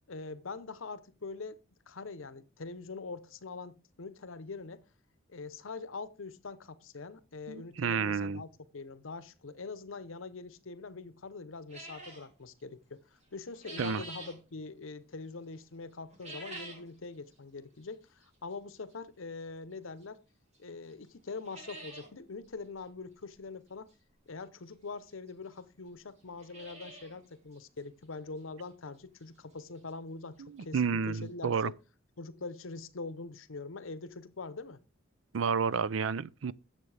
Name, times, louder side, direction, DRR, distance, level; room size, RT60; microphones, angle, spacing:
voice 1, 0.1-1.6 1.9-4.8 5.3-8.5 8.7-13.0 13.3-20.2 20.6-23.9 24.3-30.8 31.1-31.7 32.2-34.8, left 4 dB, 85° left, 0.8 m, -43 dB
voice 2, 7.5-8.4 13.8-14.0 30.4-31.7 35.3-36.5, right 6 dB, 75° right, 0.5 m, -31 dB
sound 1, 11.7-12.3 13.2-14.4 16.1-16.9 17.3-17.4 18.2-18.3 20.0-20.1 20.5-20.6 20.9-21.0 21.3-22.1 22.4-22.5 22.8-22.9 24.4-24.5 25.3-25.4 25.6-25.7 26.2-27.2 27.5-27.6 28.1-28.2 28.6-28.7 30.5-30.6 30.7-30.8 31.3-31.4, right 2 dB, 35° right, 3.1 m, -46 dB
10.5 x 7.5 x 3.3 m
head